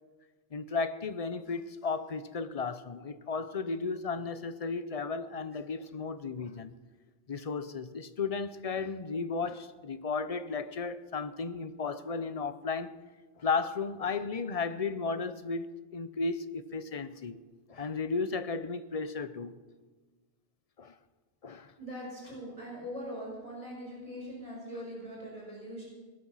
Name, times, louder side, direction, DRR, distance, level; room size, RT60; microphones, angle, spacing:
voice 1, 0.5-6.7 7.3-12.9 13.4-15.6 15.9-17.4 17.7-19.6 20.8-20.9 21.4-21.7, left 4 dB, 40° left, 0.7 m, -34 dB
voice 2, 21.8-25.8, equal, 30° right, 5.0 m, -41 dB
19.0 x 11.5 x 5.7 m
omnidirectional pair, 1.0 m